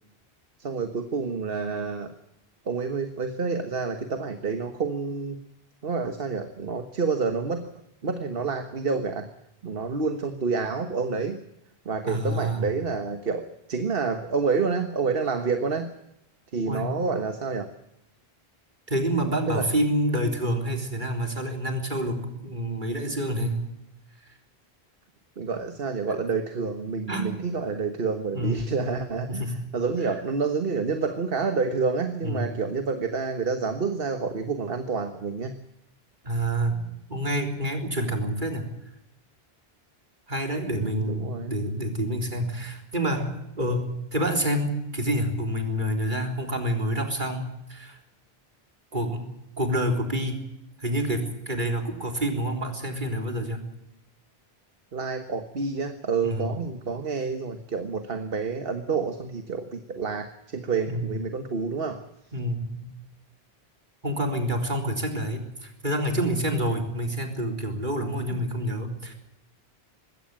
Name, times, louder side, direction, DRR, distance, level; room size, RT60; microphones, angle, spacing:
voice 1, 0.6-2.1 2.6-5.4 5.8-7.6 8.0-9.3 9.6-11.4 11.8-15.9 16.5-17.7 19.5-19.7 25.4-35.6 40.7-41.5 54.9-62.0 68.3-68.4, right 4 dB, 65° right, 8 dB, 1.6 m, -28 dB
voice 2, 12.0-12.6 16.6-17.0 18.9-23.7 27.1-27.5 28.3-28.7 29.3-29.6 32.2-32.6 36.2-38.7 40.3-48.0 48.9-50.4 50.8-53.6 56.2-56.5 60.8-61.1 62.3-62.9 64.0-69.1, right 1 dB, 50° right, 4 dB, 3.9 m, -28 dB
21.0 x 16.5 x 8.9 m, 0.84 s
omnidirectional pair, 1.0 m